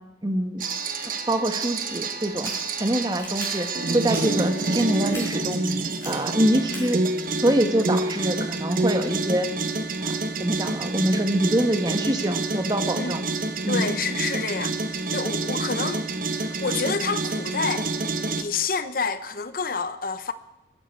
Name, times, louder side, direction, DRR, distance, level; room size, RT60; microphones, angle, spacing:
voice 1, 0.2-0.6 1.0-2.5 2.8-3.7 3.9-5.6 6.0-7.0 7.4-9.5 10.0-13.2 13.6-13.9 15.8-15.9, right 1 dB, 20° right, 1.3 m, -24 dB
sound 1, 0.6-18.4, right 3 dB, 50° right, 1.0 m, -28 dB
sound 2, 2.2-2.5 3.1-3.5 4.0-4.2 5.1-5.2 5.9-6.1 6.7-6.8, left 2 dB, 15° left, 5.1 m, -38 dB
voice 2, 13.7-16.0 16.3-17.9 18.4-20.3, left 5 dB, 50° left, 0.8 m, -28 dB
22.5 x 10.5 x 4.5 m
head